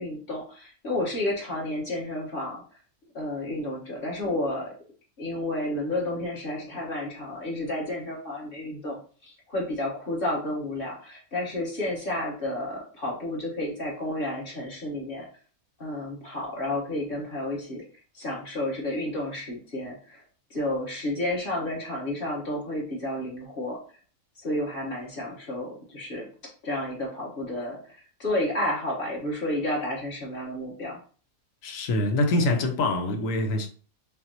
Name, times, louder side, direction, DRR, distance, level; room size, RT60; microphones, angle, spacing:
voice 1, 0.0-2.6 3.1-4.7 5.2-15.3 15.8-17.8 18.1-20.2 20.5-23.8 24.4-26.3 26.6-31.0, left 1 dB, 40° left, 1.4 m, -31 dB
voice 2, 31.6-33.7, left 2 dB, 70° left, 1.0 m, -25 dB
5.5 x 2.1 x 2.8 m
omnidirectional pair, 1.5 m